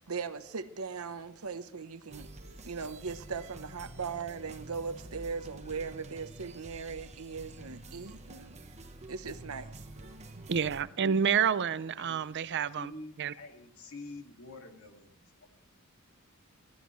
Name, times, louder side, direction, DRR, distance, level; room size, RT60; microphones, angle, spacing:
voice 1, 0.1-2.3 2.6-8.5 9.1-9.7 10.3-10.4, right 5 dB, 80° right, 0.9 m, -39 dB
sound 1, 2.1-10.8, right 2 dB, 30° right, 1.0 m, -48 dB
voice 2, 10.5-12.9 13.2-13.3, right 7 dB, 55° right, 0.5 m, -29 dB
voice 3, 11.5-12.2 12.8-15.5, left 2 dB, 70° left, 2.2 m, -48 dB
20.5 x 13.5 x 3.2 m
head